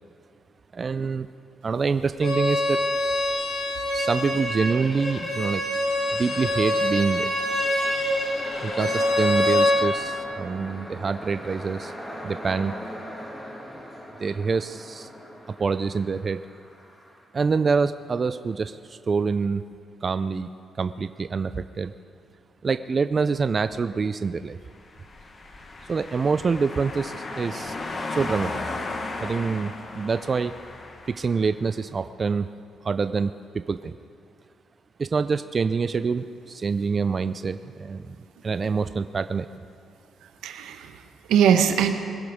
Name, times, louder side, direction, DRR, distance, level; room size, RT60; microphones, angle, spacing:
voice 1, 0.7-1.3 1.6-2.8 3.9-5.6 6.1-7.3 8.6-11.9 12.2-12.7 14.2-15.1 15.5-16.4 17.3-19.6 20.0-20.5 20.8-21.9 22.6-24.6 25.9-27.8 28.1-28.6 29.2-30.5 31.1-32.5 32.8-34.0 35.0-38.2 38.4-39.5, right 5 dB, 40° right, 11 dB, 0.4 m, -26 dB
Bowed string instrument, 2.2-9.8, left 1 dB, 55° left, 3.1 m, -25 dB
sound 1, 5.9-17.2, equal, 15° left, 2.2 m, -41 dB
sound 2, 24.8-31.6, left 3 dB, 40° left, 1.2 m, -35 dB
voice 2, 40.2-41.9, right 8 dB, 90° right, 7 dB, 1.0 m, -22 dB
22.0 x 11.5 x 3.6 m, 2.5 s
cardioid pair, 90°, 0 cm